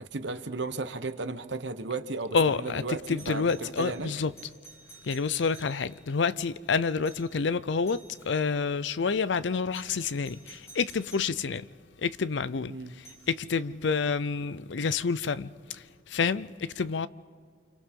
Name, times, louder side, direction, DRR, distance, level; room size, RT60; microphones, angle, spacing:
voice 1, 0.0-4.1 12.7-12.9, right 3 dB, 80° right, 1.1 m, -35 dB
voice 2, 2.3-4.3 5.0-11.7 12.0-12.7 13.0-17.1, left 5 dB, 80° left, 0.5 m, -28 dB
Doorbell, 3.2-6.1 7.0-7.4 7.8-8.4 9.7-11.4 13.0-13.3 15.7-15.8, right 3 dB, 15° left, 5.8 m, -52 dB
29.5 x 26.0 x 3.8 m
head